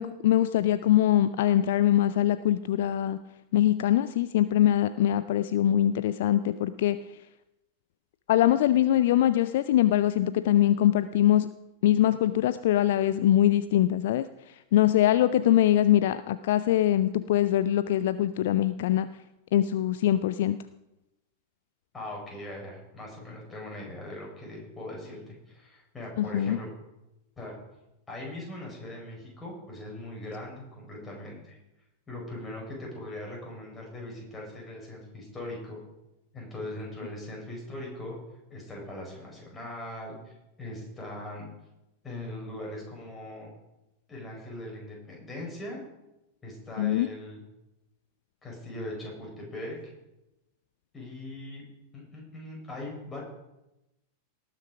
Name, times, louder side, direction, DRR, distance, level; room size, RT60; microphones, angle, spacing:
voice 1, 0.0-3.2 3.5-7.0 8.3-11.5 11.8-19.1 19.5-20.6 26.2-26.6 46.8-47.1, left 12 dB, 55° left, 13 dB, 0.4 m, -23 dB
voice 2, 21.9-26.7 27.4-27.6 28.1-31.6 32.1-35.8 36.3-38.2 38.5-41.5 42.0-43.5 44.1-45.8 46.4-47.4 48.4-49.8 50.9-51.6 51.9-53.2, left 1 dB, 15° left, -2 dB, 5.3 m, -40 dB
18.5 x 6.6 x 5.1 m, 0.93 s
figure-of-eight pair, 90°, 0 cm